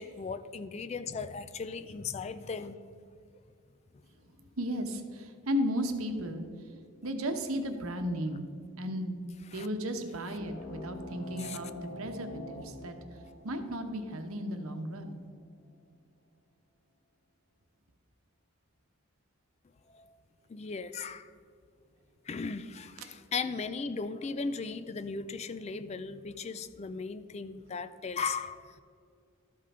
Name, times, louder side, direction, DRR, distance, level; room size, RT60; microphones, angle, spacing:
voice 1, 0.0-3.0 9.5-9.7 11.4-11.6 19.9-20.2 20.5-21.3 22.3-28.8, left 4 dB, 30° left, 12 dB, 0.3 m, -37 dB
voice 2, 4.6-6.5 7.0-8.4 8.8-9.2 9.5-15.2, equal, 80° right, 6 dB, 1.0 m, -35 dB
sound 1, 10.3-15.4, equal, 55° left, 1.6 m, -46 dB
13.0 x 5.6 x 4.9 m, 2.3 s
head